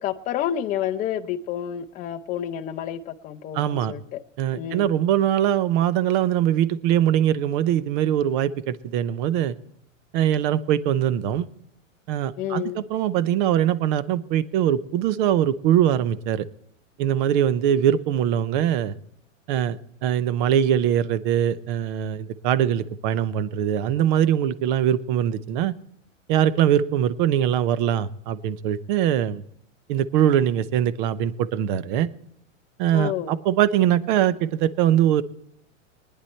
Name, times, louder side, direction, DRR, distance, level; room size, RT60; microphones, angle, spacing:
voice 1, 0.0-4.2 4.5-5.0 12.4-12.9 32.9-33.4, left 10 dB, 20° left, 6 dB, 0.6 m, -29 dB
voice 2, 3.5-3.9 4.4-9.5 10.1-11.5 12.1-16.5 17.0-18.9 19.5-25.7 26.3-29.4 29.9-32.1 32.8-35.2, right 10 dB, 40° right, 17 dB, 0.7 m, -22 dB
20.0 x 10.0 x 4.4 m, 0.71 s
hypercardioid pair, 135°, 39 cm